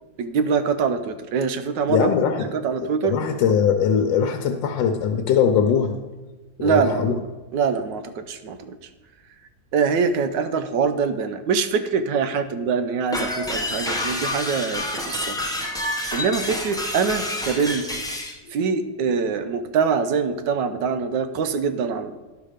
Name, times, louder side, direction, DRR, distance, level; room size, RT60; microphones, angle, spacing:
voice 1, 0.2-2.1 2.5-3.2 6.6-7.2 7.5-8.8 9.7-15.4 15.8-17.9 18.5-22.1, right 5 dB, 75° right, 10 dB, 1.3 m, -24 dB
voice 2, 1.9-2.5 2.8-6.0 6.6-7.2, left 7 dB, 85° left, 5 dB, 1.4 m, -21 dB
sound 1, 13.1-18.3, left 1 dB, 5° left, 0.5 m, -28 dB
11.0 x 5.9 x 5.0 m, 1.2 s
omnidirectional pair, 2.0 m